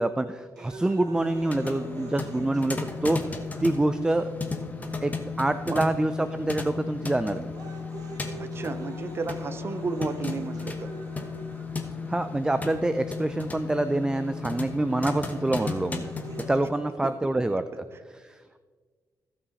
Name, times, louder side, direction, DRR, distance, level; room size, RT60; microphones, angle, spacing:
voice 1, 0.0-3.3 3.6-4.3 5.0-5.1 5.4-7.5 12.1-16.1 16.5-17.6 18.2-18.6, right 2 dB, 10° right, 11 dB, 0.3 m, -26 dB
sound 1, 0.6-4.6 5.3-5.4 6.3-6.6 7.0-12.6 13.5-13.6 15.1-16.6, right 3 dB, 65° right, 1.2 m, -45 dB
sound 2, 1.1-16.7, left 4 dB, 25° left, 1.0 m, -35 dB
voice 2, 8.4-10.9 17.0-17.1, right 4 dB, 35° right, 11 dB, 0.7 m, -33 dB
15.5 x 5.6 x 4.1 m, 1.5 s
cardioid pair, 115°, 7 cm